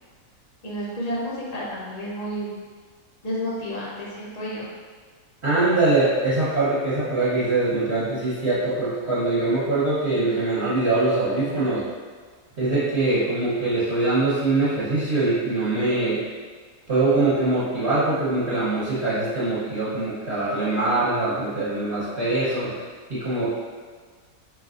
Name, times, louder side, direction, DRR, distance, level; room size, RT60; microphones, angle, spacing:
voice 1, 0.6-2.5 3.2-4.7, equal, 45° left, -6 dB, 0.5 m, -31 dB
voice 2, 5.4-11.8 12.6-16.2 16.9-22.7 23.1-23.6, right 2 dB, 45° right, -13 dB, 1.3 m, -23 dB
4.7 x 3.0 x 2.5 m, 1.6 s
omnidirectional pair, 1.7 m